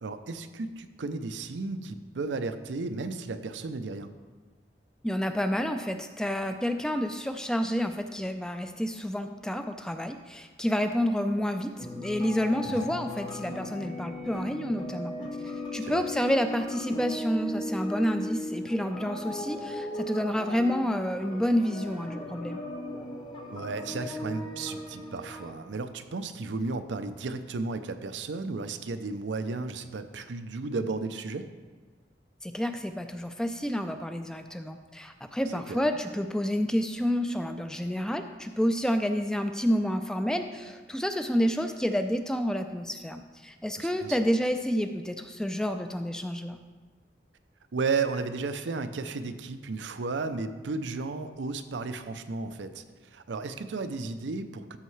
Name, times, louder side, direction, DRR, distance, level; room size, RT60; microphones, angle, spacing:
voice 1, 0.0-4.1 12.7-12.9 15.8-16.0 23.5-31.5 35.7-35.8 43.8-44.2 47.7-52.8 53.1-54.8, right 3 dB, 90° right, 9 dB, 0.5 m, -34 dB
voice 2, 5.0-15.1 15.7-22.6 32.4-46.6, equal, 5° left, 7 dB, 0.3 m, -29 dB
sound 1, 11.8-25.5, left 1 dB, 25° left, 0.9 m, -37 dB
13.0 x 5.6 x 3.2 m, 1.4 s
head